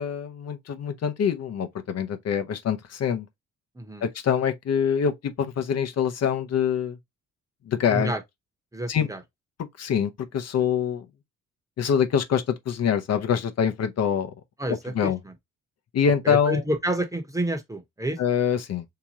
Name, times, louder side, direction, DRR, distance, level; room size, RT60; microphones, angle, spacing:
voice 1, 0.0-3.3 4.0-7.0 7.7-8.1 8.9-9.1 9.8-11.0 11.8-14.3 14.7-15.2 15.9-16.6 18.2-18.8, left 8 dB, 55° left, 0.7 m, -25 dB
voice 2, 7.9-8.2 8.7-9.2 14.6-15.3 16.0-18.2, right 1 dB, 10° right, 0.9 m, -29 dB
3.5 x 2.9 x 2.9 m
cardioid pair, 90°, 30 cm